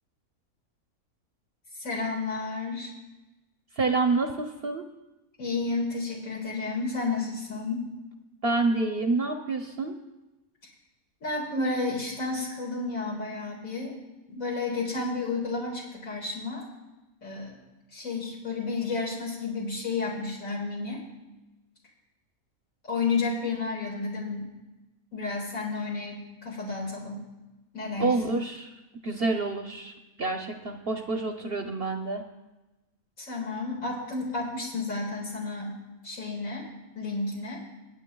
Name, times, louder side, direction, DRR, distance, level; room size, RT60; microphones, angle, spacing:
voice 1, 1.7-2.9 5.4-7.9 11.2-13.9 14.3-16.6 17.2-17.5 17.9-21.0 22.9-24.5 25.1-27.3 27.7-28.4 33.2-35.8 36.0-36.7 36.9-37.6, left 3 dB, 70° left, -4 dB, 2.3 m, -31 dB
voice 2, 3.8-4.8 8.4-10.0 28.0-28.7 29.0-29.9 30.2-32.2, right 3 dB, 50° right, 4 dB, 0.8 m, -27 dB
24.5 x 9.0 x 2.3 m, 1.1 s
omnidirectional pair, 1.5 m